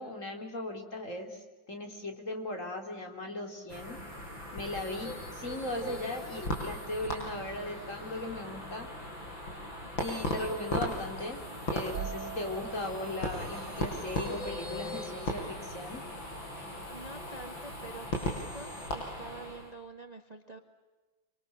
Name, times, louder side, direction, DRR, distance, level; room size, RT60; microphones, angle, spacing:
voice 1, 0.0-4.0 4.5-8.9 10.0-11.4 11.7-16.0, left 1 dB, 40° left, 3 dB, 3.9 m, -38 dB
sound 1, 3.7-19.7, left 1 dB, 85° left, 7.0 m, -38 dB
sound 2, 11.9-15.7, right 6 dB, 65° right, 1.8 m, -45 dB
voice 2, 16.6-20.6, right 3 dB, 20° right, 6 dB, 1.7 m, -47 dB
27.0 x 26.5 x 8.0 m, 1.2 s
omnidirectional pair, 2.1 m